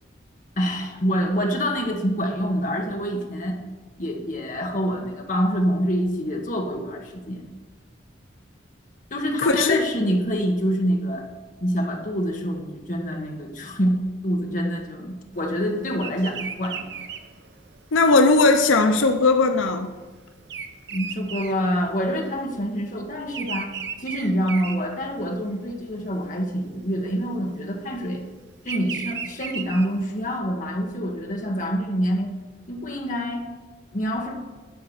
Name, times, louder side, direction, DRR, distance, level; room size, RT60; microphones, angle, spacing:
voice 1, 0.6-3.6 4.0-7.4 9.1-11.3 11.6-17.0 20.9-23.7 24.0-28.2 28.6-32.3 32.7-33.5 33.9-34.4, equal, 40° left, 1.3 m, -26 dB
voice 2, 9.4-9.8 17.9-19.9, left 3 dB, 90° left, 0.6 m, -18 dB
Bird vocalization bird call bird song, 16.0-22.4 22.6-25.5 26.0-26.4 27.3-30.3, right 7 dB, 60° right, 0.7 m, -36 dB
12.0 x 4.8 x 7.6 m
head